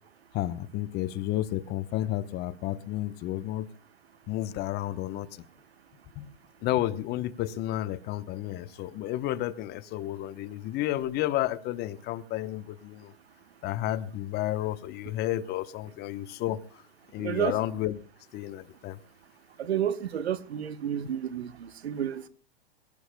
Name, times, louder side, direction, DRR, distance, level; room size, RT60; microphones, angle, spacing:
voice 1, 0.3-3.7 4.3-5.4 6.2-6.3 6.6-13.1 13.6-16.6 17.1-18.0 18.3-19.0, left 14 dB, 35° left, 1.0 m, -31 dB
voice 2, 17.2-17.6 19.6-22.3, right 9 dB, 85° right, 1.2 m, -30 dB
24.0 x 17.0 x 2.3 m
hypercardioid pair, 120°, 31 cm